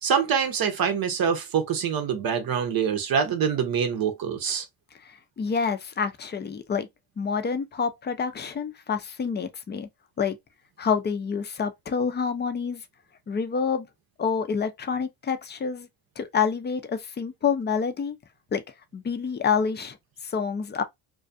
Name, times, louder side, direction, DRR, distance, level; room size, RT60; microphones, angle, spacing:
voice 1, 0.0-4.7, right 7 dB, 50° right, 0.7 m, -25 dB
voice 2, 5.4-6.9 7.2-9.9 10.2-10.4 10.8-12.8 13.3-13.9 14.2-15.9 16.2-18.2 18.5-18.6 18.9-20.0 20.2-20.8, left 6 dB, 25° left, 0.4 m, -27 dB
2.3 x 2.3 x 2.5 m
supercardioid pair, 85°, 48 cm